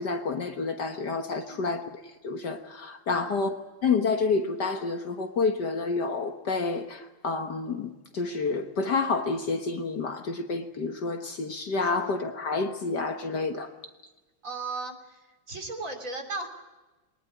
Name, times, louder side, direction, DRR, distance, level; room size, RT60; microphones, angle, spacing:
voice 1, 0.0-1.8 2.2-3.5 3.8-13.7, left 4 dB, 55° left, 6 dB, 1.8 m, -29 dB
voice 2, 3.1-3.4 11.8-11.9 14.4-16.5, right 3 dB, 35° right, 3 dB, 3.5 m, -37 dB
22.5 x 19.5 x 9.0 m, 1.1 s
omnidirectional pair, 2.3 m